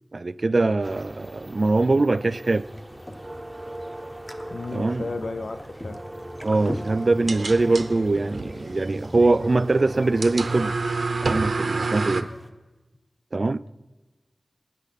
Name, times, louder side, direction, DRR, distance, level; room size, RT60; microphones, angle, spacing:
voice 1, 0.1-2.7 4.7-5.0 6.4-10.7 11.3-12.3 13.3-13.7, right 2 dB, 55° right, 0.3 m, -22 dB
sound 1, 0.8-10.7, right 1 dB, 15° right, 0.7 m, -40 dB
sound 2, 2.5-12.5, equal, 20° left, 1.0 m, -42 dB
voice 2, 4.5-6.1, left 3 dB, 80° left, 0.5 m, -33 dB
sound 3, 6.5-12.2, right 3 dB, 85° right, 0.7 m, -30 dB
18.5 x 9.1 x 4.1 m
wide cardioid pair, 65°, 0 cm